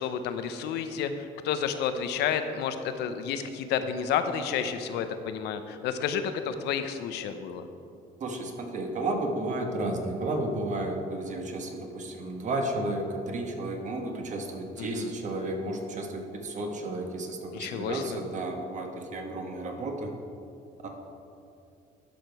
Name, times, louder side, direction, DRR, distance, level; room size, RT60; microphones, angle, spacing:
voice 1, 0.0-7.6 14.8-15.1 17.5-18.2, left 7 dB, 80° left, 9 dB, 0.7 m, -31 dB
voice 2, 8.2-20.1 20.8-20.9, right 2 dB, 45° right, 3 dB, 1.3 m, -32 dB
12.0 x 5.0 x 4.7 m, 2.5 s
cardioid pair, 110°, 17 cm